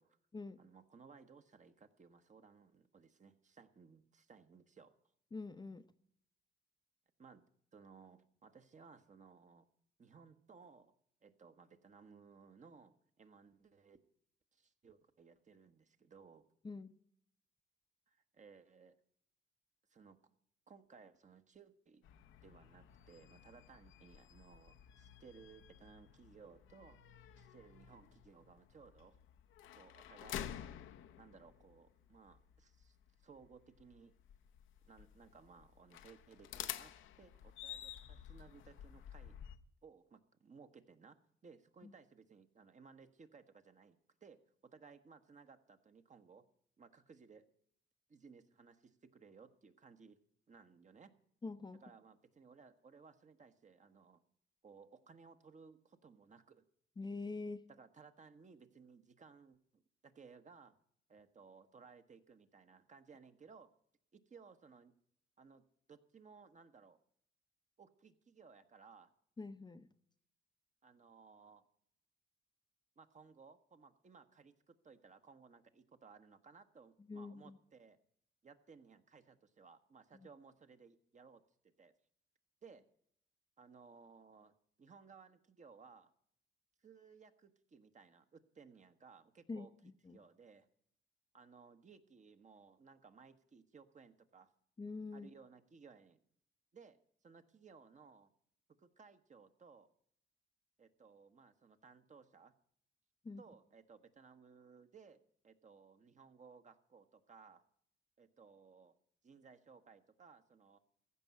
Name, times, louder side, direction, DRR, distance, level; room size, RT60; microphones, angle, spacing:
voice 1, 0.6-4.9 7.2-7.4 7.7-9.7 10.0-10.9 11.2-14.0 14.5-16.5 18.1-19.0 19.9-20.2 20.7-22.0 22.4-29.2 29.7-30.7 31.2-34.1 34.9-39.4 39.8-44.4 44.7-46.4 46.8-47.5 48.1-50.2 50.5-51.1 51.8-54.2 54.6-56.6 57.7-60.8 61.1-63.7 64.1-64.9 65.4-65.6 65.9-67.0 67.8-69.1 70.8-71.6 73.0-78.0 78.4-81.4 81.8-81.9 82.6-82.8 83.6-86.1 86.8-89.7 90.1-90.7 91.3-94.5 95.1-96.2 96.7-98.3 98.8-99.9 100.8-102.5 103.4-105.2 105.4-107.6 108.2-108.9 109.2-110.8, right 5 dB, 40° right, 9 dB, 1.2 m, -60 dB
voice 2, 5.3-5.9 16.6-16.9 41.8-41.9 51.4-51.8 57.0-57.6 69.4-69.9 77.1-77.6 89.5-89.7 90.0-90.2 94.8-95.3 103.2-103.4, left 3 dB, 20° left, 10 dB, 0.7 m, -45 dB
sound 1, 22.0-39.6, left 10 dB, 80° left, 0.8 m, -51 dB
15.5 x 5.4 x 9.5 m, 0.67 s
cardioid pair, 90°, 20 cm